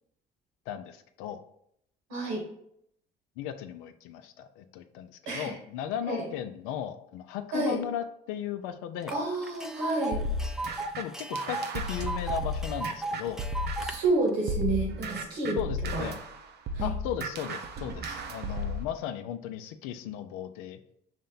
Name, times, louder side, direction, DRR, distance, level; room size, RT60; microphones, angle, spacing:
voice 1, 0.7-1.4 3.4-9.2 11.0-13.4 15.6-16.2 16.8-20.8, left 10 dB, 80° left, 10 dB, 0.4 m, -36 dB
voice 2, 2.1-2.4 5.3-5.5 6.1-6.2 7.5-7.8 9.1-10.2 13.8-15.6 15.9-16.0 16.7-16.9, right 2 dB, 80° right, -1 dB, 1.4 m, -29 dB
Tick, 9.1-9.2 9.4-13.9, right 2 dB, 5° right, 0.3 m, -36 dB
sound 1, 10.1-14.1 14.5-18.8, equal, 50° right, 0.6 m, -34 dB
5.5 x 2.1 x 3.8 m, 0.72 s
hypercardioid pair, 60°, 21 cm